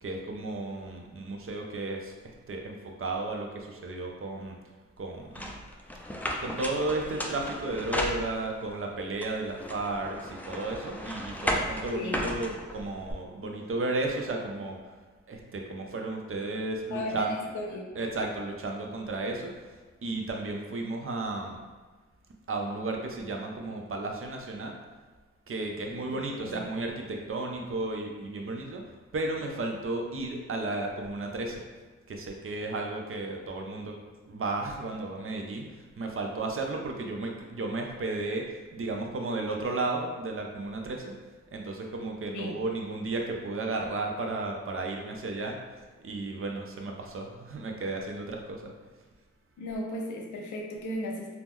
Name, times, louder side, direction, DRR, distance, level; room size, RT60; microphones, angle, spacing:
voice 1, 0.0-4.6 5.0-5.6 6.4-14.9 15.3-17.3 17.9-21.6 22.5-24.8 25.5-28.8 29.1-31.6 32.1-34.0 34.3-41.1 41.5-45.6 46.0-48.7, right 2 dB, 45° right, 2 dB, 0.6 m, -33 dB
sound 1, 5.3-8.7 9.2-13.1, equal, 5° left, 0.4 m, -34 dB
voice 2, 11.9-12.3 16.9-17.9 26.1-26.2 26.5-26.7 42.3-42.5 49.6-51.3, left 1 dB, 90° left, 1 dB, 0.5 m, -35 dB
2.9 x 2.0 x 3.6 m, 1.3 s
cardioid pair, 50°, 30 cm